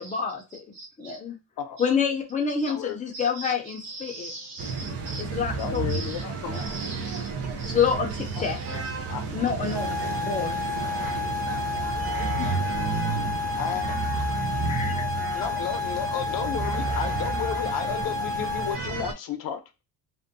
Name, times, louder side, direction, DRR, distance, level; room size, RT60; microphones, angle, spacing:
voice 1, 0.0-0.4 1.0-1.4 1.8-4.3 5.2-6.1 7.7-8.8 9.3-10.6 12.4-12.6 14.7-15.0, left 6 dB, 20° left, 0.6 m, -28 dB
voice 2, 0.7-1.2 2.6-2.7 3.1-5.2 5.9-6.2 6.5-7.3 7.6-8.7 9.6-9.7, right 2 dB, 80° right, 0.8 m, -40 dB
voice 3, 2.7-3.0 5.6-6.8 8.3-9.2 12.7-12.9 13.5-14.0 15.3-19.6, left 8 dB, 65° left, 0.6 m, -33 dB
sound 1, 4.6-19.1, right 5 dB, 40° right, 0.5 m, -31 dB
sound 2, 9.7-18.7, left 5 dB, 10° right, 1.2 m, -31 dB
2.6 x 2.2 x 2.5 m
cardioid pair, 140°, 37 cm